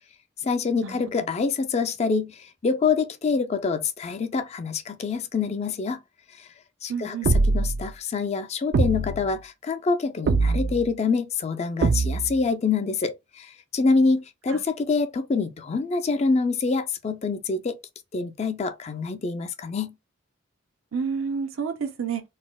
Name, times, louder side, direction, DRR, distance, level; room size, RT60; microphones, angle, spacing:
voice 1, 0.4-6.0 6.4-6.5 6.8-7.2 7.5-17.8 18.1-19.9, left 4 dB, 35° left, 0.3 m, -26 dB
voice 2, 6.9-7.3 14.5-14.6 20.9-22.2, right 6 dB, 90° right, 0.7 m, -29 dB
sound 1, 7.2-7.9 8.7-9.3 10.3-10.9 11.8-12.4, right 3 dB, 55° right, 0.3 m, -22 dB
4.0 x 2.1 x 2.2 m
head